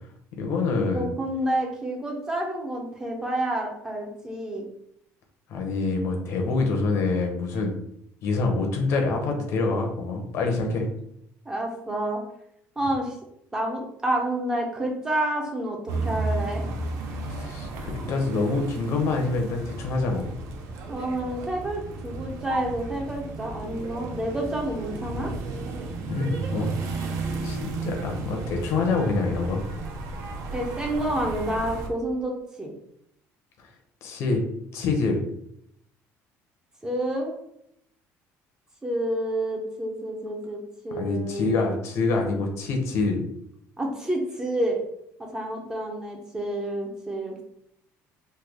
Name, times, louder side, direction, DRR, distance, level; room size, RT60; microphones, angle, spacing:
voice 1, 0.4-1.1 5.5-7.7 8.2-10.9 17.3-20.3 26.1-26.7 27.0-27.2 27.4-29.6 33.6-33.7 34.0-34.4 34.7-35.2 41.0-43.2, left 3 dB, 55° left, 3 dB, 0.7 m, -26 dB
voice 2, 0.9-4.6 11.5-12.2 12.8-13.2 13.5-16.6 20.9-25.3 30.5-32.3 32.6-32.7 36.8-37.3 38.8-41.7 43.8-44.8 45.2-47.4, right 1 dB, 10° right, 1 dB, 0.5 m, -29 dB
sound 1, 15.9-31.9, right 3 dB, 65° right, 0.5 m, -33 dB
3.2 x 2.2 x 3.4 m, 0.74 s
cardioid pair, 165°, 6 cm